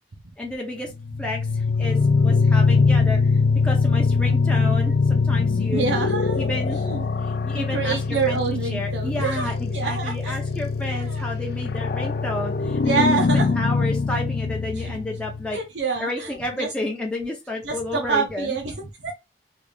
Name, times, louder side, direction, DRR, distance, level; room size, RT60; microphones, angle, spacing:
voice 1, 0.4-0.9 1.2-3.3 3.6-5.8 6.4-6.9 7.2-15.6 16.0-18.6, left 1 dB, 5° left, 0.6 m, -31 dB
sound 1, 0.9-15.5, left 4 dB, 55° left, 0.4 m, -22 dB
voice 2, 5.6-6.5 6.7-7.1 7.5-10.5 10.9-11.2 12.8-13.5 14.7-15.0 15.5-16.7 17.6-19.1, right 5 dB, 85° right, 0.7 m, -27 dB
3.4 x 2.4 x 3.3 m
head